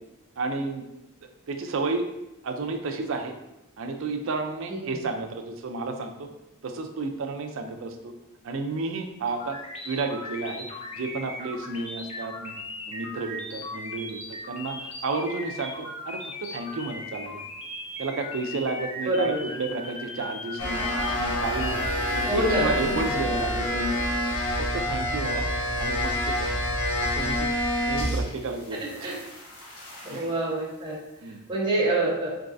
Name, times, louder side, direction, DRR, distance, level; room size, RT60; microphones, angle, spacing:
voice 1, 0.4-0.8 1.5-2.1 2.4-3.3 3.8-6.1 6.6-8.1 8.4-9.6 9.8-10.7 11.0-12.5 12.9-14.2 14.5-16.2 16.5-17.4 18.0-20.9 21.2-21.8 22.1-23.9 24.6-25.5 25.8-26.6 27.0-27.5 27.9-29.1 30.1-30.3 31.2-31.4, right 3 dB, 65° right, 5 dB, 0.4 m, -31 dB
sound 1, 9.3-22.2, left 2 dB, 30° left, 0.5 m, -38 dB
voice 2, 19.0-19.4 22.2-23.0 29.0-29.1 30.0-31.0 31.5-32.3, right 1 dB, 20° right, -5 dB, 0.9 m, -26 dB
sound 2, 20.6-28.5 28.8-30.3, left 1 dB, 80° left, 1.0 m, -28 dB
3.9 x 3.5 x 2.5 m, 0.93 s
head